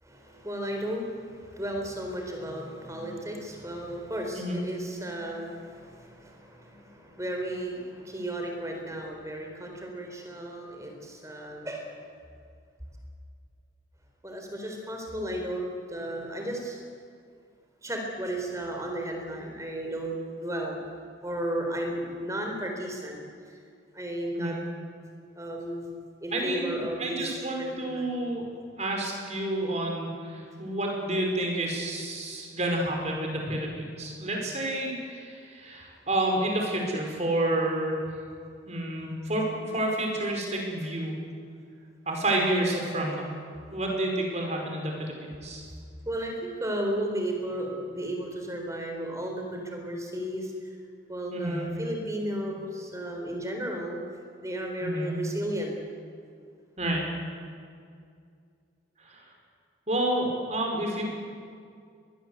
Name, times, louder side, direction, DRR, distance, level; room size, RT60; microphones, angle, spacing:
voice 1, 0.0-12.1 14.2-16.8 17.8-20.1 20.4-20.8 21.2-23.2 23.5-23.6 23.9-24.6 25.4-25.9 26.2-28.1 43.0-43.1 46.1-50.5 51.1-54.0 54.4-55.7, right 1 dB, 15° right, 2 dB, 4.0 m, -34 dB
voice 2, 26.3-28.5 28.8-38.0 38.7-41.1 42.0-43.3 43.7-45.7 51.3-51.7 54.8-55.1 56.8-57.1 59.0-59.2 59.9-61.0, right 1 dB, 35° right, 1 dB, 5.1 m, -29 dB
24.0 x 21.0 x 8.1 m, 2.3 s
head